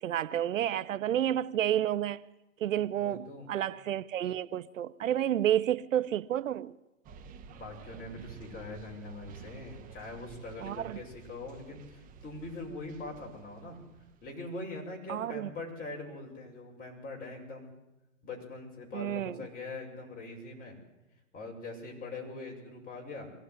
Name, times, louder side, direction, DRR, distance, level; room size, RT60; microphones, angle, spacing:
voice 1, 0.0-2.2 2.6-6.7 10.6-11.0 15.1-15.5 18.9-19.4, right 11 dB, 70° right, 0.9 m, -30 dB
voice 2, 2.9-3.5 7.5-13.8 14.2-17.7 18.2-20.8 21.3-23.3, left 2 dB, 20° left, 6.3 m, -42 dB
sound 1, 7.0-14.3, right 6 dB, 20° right, 1.2 m, -52 dB
23.0 x 17.0 x 9.7 m
hypercardioid pair, 135°, 40 cm